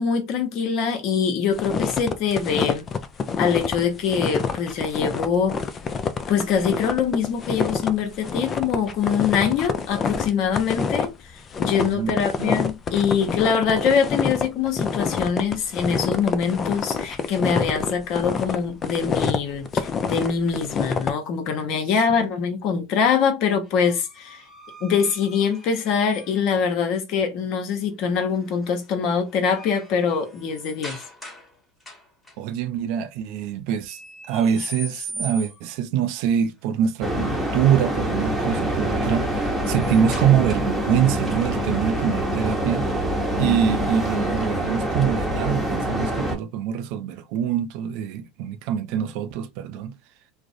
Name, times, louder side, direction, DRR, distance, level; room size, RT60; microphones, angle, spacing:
voice 1, 0.0-2.9 3.4-5.6 6.3-24.4 24.8-31.0, left 6 dB, 55° left, 0.8 m, -24 dB
sound 1, 1.5-21.1, left 5 dB, 35° left, 0.4 m, -27 dB
voice 2, 11.8-12.5 22.1-22.2 32.4-34.0 34.3-42.9 43.4-49.9, right 9 dB, 60° right, 0.3 m, -24 dB
sound 2, 23.7-26.6 28.3-28.7 29.1-31.5 31.8-32.3 33.9-35.8 38.1-40.9, equal, 15° left, 1.2 m, -41 dB
sound 3, 37.0-46.4, equal, 5° right, 0.9 m, -25 dB
2.4 x 2.0 x 2.5 m
hypercardioid pair, 95°, 0 cm